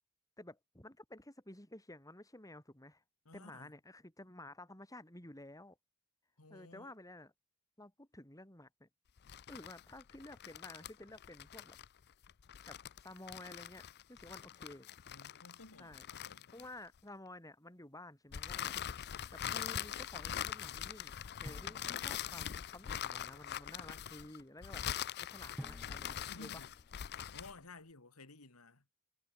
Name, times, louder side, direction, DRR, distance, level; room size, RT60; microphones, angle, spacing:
voice 1, 0.4-3.0 3.3-5.8 6.5-7.3 7.8-8.9 9.5-11.8 12.7-14.9 15.8-16.0 16.5-18.7 19.3-21.2 21.4-24.8 25.2-26.6, left 1 dB, 15° left, 5.8 m, -52 dB
voice 2, 3.2-3.7 6.4-6.9 15.1-16.5 26.3-26.7 27.3-28.8, left 2 dB, 90° left, 2.7 m, -55 dB
sound 1, 9.2-17.0 18.3-27.6, left 10 dB, 50° left, 0.5 m, -43 dB
Drum, 21.5-23.0 25.6-27.7, equal, 5° right, 4.0 m, -54 dB
head